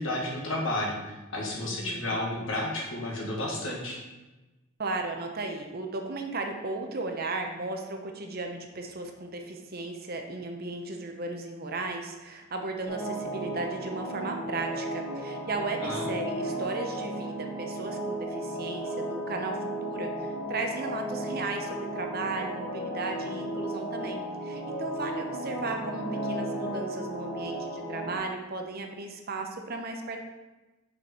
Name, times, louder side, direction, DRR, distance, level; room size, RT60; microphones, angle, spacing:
voice 1, 0.0-4.0 15.8-16.1, left 1 dB, 65° left, -2 dB, 1.7 m, -32 dB
voice 2, 1.6-2.2 4.8-30.2, right 3 dB, 45° right, 3 dB, 0.8 m, -35 dB
sound 1, 12.9-28.2, right 1 dB, 10° left, 1.8 m, -34 dB
6.3 x 5.2 x 4.4 m, 1.1 s
head